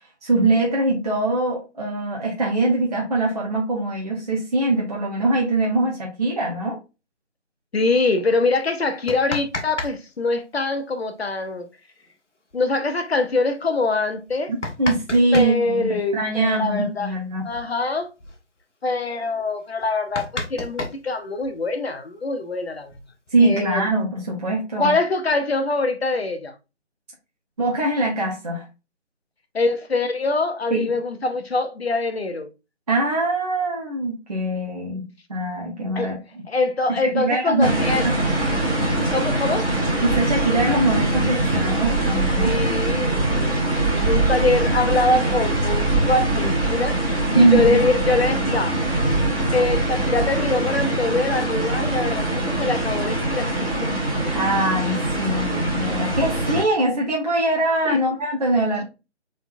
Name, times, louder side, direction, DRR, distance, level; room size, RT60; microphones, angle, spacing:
voice 1, 0.2-6.8 14.5-17.5 23.3-24.9 27.6-28.6 30.7-30.9 32.9-36.4 36.9-38.1 40.0-42.5 47.3-47.8 54.3-58.8, right 2 dB, 35° right, 0.8 m, -22 dB
voice 2, 7.7-11.7 12.5-14.5 15.3-17.1 17.4-18.1 18.8-22.9 23.4-23.9 24.8-26.5 29.5-32.5 35.9-36.2 36.5-38.1 39.1-39.7 42.4-47.0 47.3-48.8 49.5-54.0 57.9-58.0, left 3 dB, 60° left, 0.9 m, -24 dB
sound 1, 8.9-10.0 10.2-10.3 12.1-12.2 12.5-12.6 13.2-13.4 14.2-15.6 17.1-17.2 17.5-17.7 18.0-18.4 18.9-19.0 19.4-19.5 19.8-21.7 22.6-23.4, left 2 dB, 90° left, 1.1 m, -31 dB
sound 2, 37.6-56.6, right 2 dB, 15° right, 1.9 m, -23 dB
4.2 x 3.8 x 2.6 m
figure-of-eight pair, 155°, 35 cm